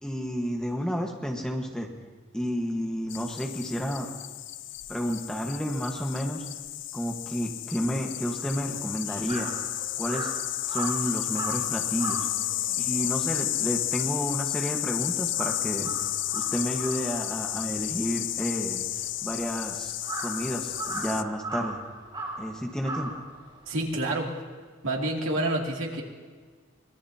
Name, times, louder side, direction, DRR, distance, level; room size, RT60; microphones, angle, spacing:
voice 1, 0.0-1.9 2.3-4.1 4.9-6.4 6.9-9.5 10.0-10.3 10.7-12.3 12.8-15.9 16.3-18.8 19.2-19.9 20.2-21.8 22.4-23.2, equal, 5° left, 1 dB, 1.4 m, -31 dB
sound 1, 3.1-21.2, left 14 dB, 65° left, 0.5 m, -32 dB
sound 2, 8.0-14.1, left 1 dB, 45° left, 4.8 m, -52 dB
Crow, 8.3-14.9 15.2-23.8, right 2 dB, 25° right, 4.3 m, -39 dB
voice 2, 23.7-24.3 24.8-26.0, right 1 dB, 85° right, -1 dB, 2.6 m, -28 dB
24.5 x 20.0 x 2.9 m, 1.5 s
head